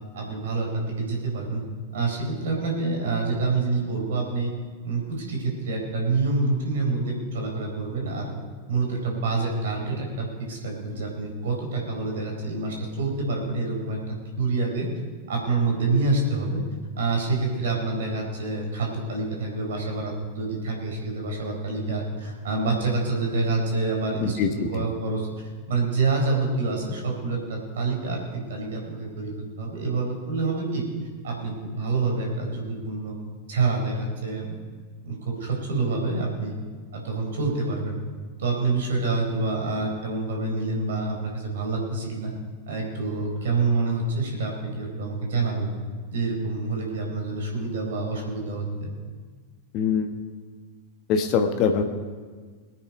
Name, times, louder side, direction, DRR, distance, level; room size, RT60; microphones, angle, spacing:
voice 1, 0.1-1.6 1.9-4.5 4.8-8.3 8.7-14.9 15.3-16.6 17.0-30.8 31.2-33.1 33.5-34.6 35.0-36.5 36.9-38.0 38.4-42.3 42.7-45.7 46.1-48.9, right 3 dB, 60° right, 0 dB, 4.3 m, -27 dB
voice 2, 24.2-24.8 49.7-50.1 51.1-51.8, left 6 dB, 40° left, 6 dB, 1.3 m, -23 dB
21.0 x 9.0 x 5.2 m, 1.5 s
figure-of-eight pair, 90°, 0 cm